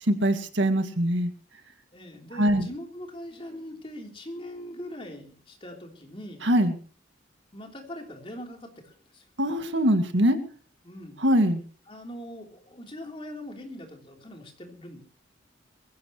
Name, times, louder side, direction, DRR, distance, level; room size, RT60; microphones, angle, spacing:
voice 1, 0.1-1.3 2.4-2.7 6.4-6.8 9.4-10.4 11.2-11.6, equal, 70° right, 7 dB, 1.9 m, -22 dB
voice 2, 1.9-6.4 7.5-9.2 10.8-11.3 11.9-15.0, left 1 dB, 30° left, 2 dB, 3.3 m, -41 dB
22.0 x 16.5 x 3.0 m, 0.42 s
head